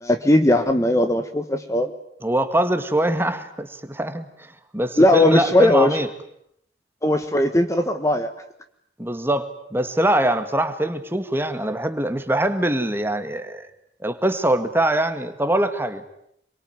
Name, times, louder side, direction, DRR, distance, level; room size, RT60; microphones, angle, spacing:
voice 1, 0.0-1.9 5.0-6.0 7.0-8.3, left 1 dB, 15° left, 7 dB, 1.4 m, -18 dB
voice 2, 2.2-6.1 9.0-13.7 14.0-16.0, right 1 dB, 15° right, 9 dB, 2.0 m, -23 dB
26.5 x 24.0 x 9.5 m, 0.73 s
head